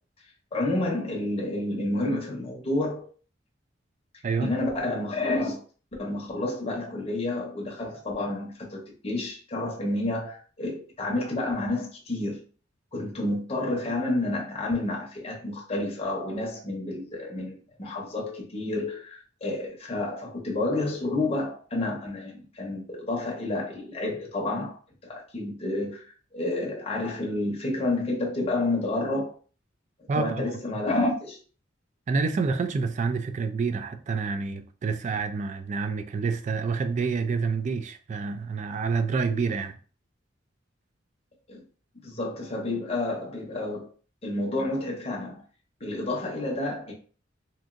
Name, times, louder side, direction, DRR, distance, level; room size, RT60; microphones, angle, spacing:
voice 1, 0.5-3.1 4.4-5.6 6.0-12.4 12.9-24.8 25.0-29.3 30.1-31.4 41.5-41.6 41.9-43.9 44.2-45.4 45.8-46.9, left 2 dB, 30° left, 0.7 m, -30 dB
voice 2, 32.1-39.8, right 4 dB, 40° right, 0.3 m, -28 dB
2.8 x 2.5 x 2.5 m
head